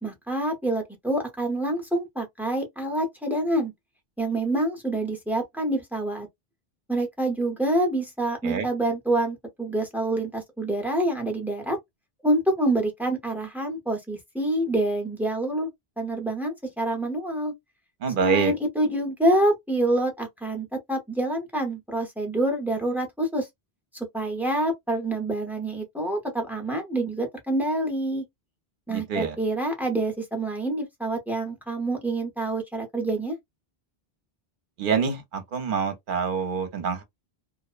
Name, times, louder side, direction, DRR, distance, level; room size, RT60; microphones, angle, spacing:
voice 1, 0.0-3.7 4.2-6.3 6.9-11.8 12.2-15.7 16.0-17.5 18.2-23.5 23.9-28.2 28.9-33.4, right 1 dB, ahead, 0.6 m, -27 dB
voice 2, 18.0-18.5 28.9-29.3 34.8-37.0, right 6 dB, 60° right, 0.8 m, -26 dB
2.5 x 2.0 x 2.4 m
omnidirectional pair, 1.0 m